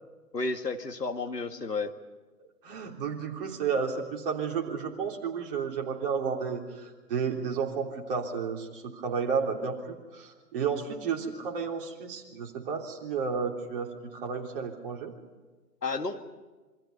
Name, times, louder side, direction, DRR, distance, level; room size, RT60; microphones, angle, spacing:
voice 1, 0.3-1.9 15.8-16.2, left 3 dB, 80° left, 7 dB, 2.1 m, -32 dB
voice 2, 2.6-15.1, right 6 dB, 35° right, 1 dB, 3.3 m, -32 dB
27.5 x 25.0 x 5.5 m, 1.2 s
figure-of-eight pair, 130°, 48 cm